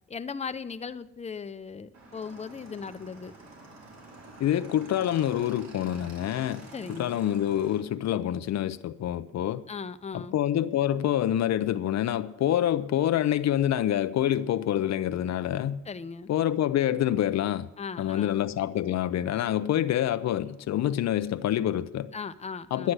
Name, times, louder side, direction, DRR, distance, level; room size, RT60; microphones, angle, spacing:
voice 1, 0.1-3.3 6.7-7.2 9.7-10.4 15.8-16.3 17.8-18.4 22.1-22.9, left 5 dB, 20° left, 0.7 m, -38 dB
Motorcycle / Engine, 1.9-7.8, right 2 dB, 60° right, 4.2 m, -48 dB
voice 2, 4.4-6.6 6.9-9.6 10.1-15.8 16.3-17.7 18.0-22.1 22.7-22.9, left 11 dB, 60° left, 0.6 m, -26 dB
11.5 x 9.4 x 7.9 m
cardioid pair, 90°, 30 cm